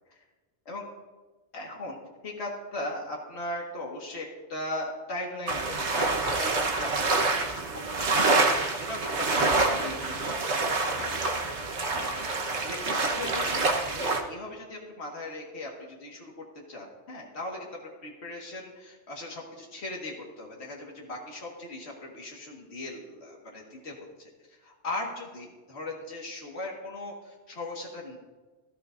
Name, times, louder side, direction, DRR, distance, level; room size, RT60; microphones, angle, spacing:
voice 1, 1.5-2.0 2.2-11.5 11.9-12.3 12.7-28.2, left 2 dB, 70° left, -2 dB, 2.1 m, -39 dB
sound 1, 5.5-14.2, right 3 dB, 75° right, 1.5 m, -27 dB
17.5 x 14.0 x 2.6 m, 1.2 s
omnidirectional pair, 1.2 m